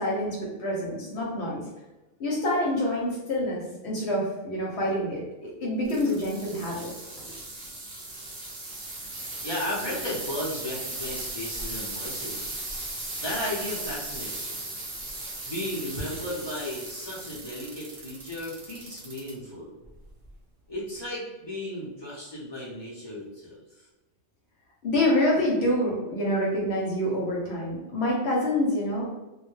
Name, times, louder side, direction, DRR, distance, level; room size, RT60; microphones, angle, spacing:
voice 1, 0.0-1.6 2.2-6.9 24.8-29.0, left 1 dB, 65° left, -3 dB, 0.8 m, -27 dB
sound 1, 5.8-19.3 19.8-20.3 21.0-21.1, right 2 dB, 45° right, 0.7 m, -37 dB
voice 2, 9.4-12.6 13.2-14.6 15.4-19.8 20.7-23.6, left 1 dB, 35° left, -7 dB, 0.4 m, -35 dB
2.2 x 2.1 x 3.0 m, 1.1 s
omnidirectional pair, 1.3 m